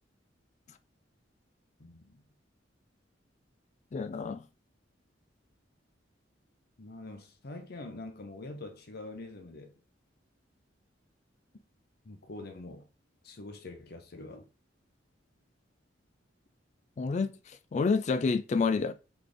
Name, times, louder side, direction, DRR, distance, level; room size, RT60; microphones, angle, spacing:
voice 1, 1.8-2.2 6.8-9.7 12.0-12.9 13.2-14.5, left 2 dB, 55° left, 0.7 m, -45 dB
voice 2, 3.9-4.5 17.0-17.4 17.7-18.9, left 4 dB, 40° left, 0.3 m, -28 dB
3.4 x 3.3 x 3.9 m
head